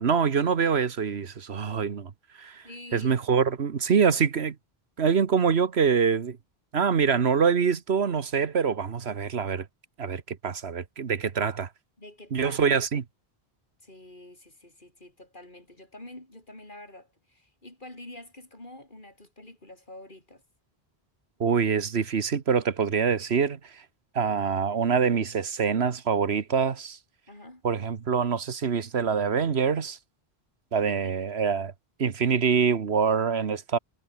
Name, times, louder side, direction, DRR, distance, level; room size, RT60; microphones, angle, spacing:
voice 1, 0.0-2.1 2.4-2.6 2.9-4.6 5.0-6.4 6.7-9.7 10.0-11.7 12.3-13.0 21.4-23.8 24.1-27.0 27.6-30.0 30.7-31.7 32.0-33.8, right 6 dB, 85° right, 1.5 m, -25 dB
voice 2, 2.6-3.1 12.0-12.7 13.8-20.4 27.3-27.6 30.9-31.3, left 1 dB, 50° left, 5.2 m, -47 dB
omnidirectional pair, 1.1 m